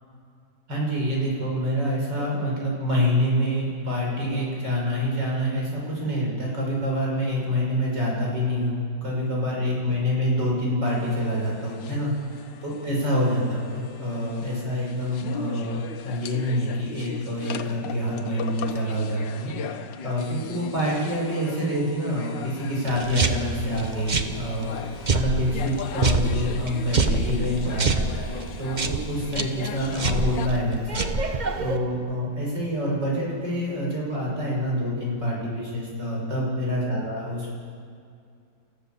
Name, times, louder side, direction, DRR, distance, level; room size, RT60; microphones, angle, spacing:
voice 1, 0.7-15.8 16.0-28.3 28.6-37.5, equal, 75° right, -4 dB, 6.5 m, -27 dB
sound 1, 10.9-30.5, left 7 dB, 85° left, 1.6 m, -39 dB
sound 2, 22.9-31.8, right 3 dB, 30° right, 0.9 m, -27 dB
28.5 x 15.0 x 7.2 m, 2.3 s
omnidirectional pair, 1.9 m